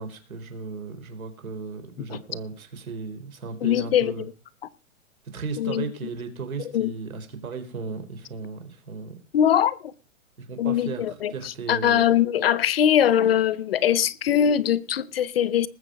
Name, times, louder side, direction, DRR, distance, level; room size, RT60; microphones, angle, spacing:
voice 1, 0.0-4.2 5.3-9.1 10.4-12.1, right 4 dB, 85° right, 4.3 m, -36 dB
voice 2, 3.6-4.2 5.6-5.9 6.7-6.9 9.3-9.9 10.6-15.7, left 9 dB, 45° left, 0.7 m, -22 dB
20.0 x 7.4 x 5.1 m
hypercardioid pair, 165°, 41 cm